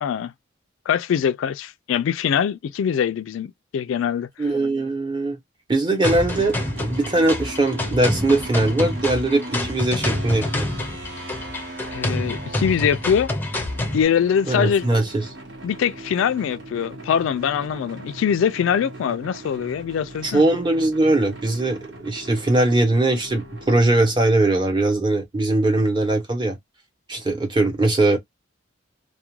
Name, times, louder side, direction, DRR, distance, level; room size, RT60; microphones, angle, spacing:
voice 1, 0.0-0.3 0.9-4.3 11.9-13.3 13.9-14.9 15.6-20.5, left 8 dB, 85° left, 0.3 m, -23 dB
voice 2, 4.4-5.4 5.7-10.7 14.5-15.2 20.2-26.6 27.1-28.2, right 2 dB, 25° right, 0.8 m, -21 dB
sound 1, 6.0-14.0, left 1 dB, 10° left, 0.5 m, -27 dB
sound 2, 6.3-24.2, right 1 dB, 65° right, 0.9 m, -39 dB
2.3 x 2.1 x 2.9 m
head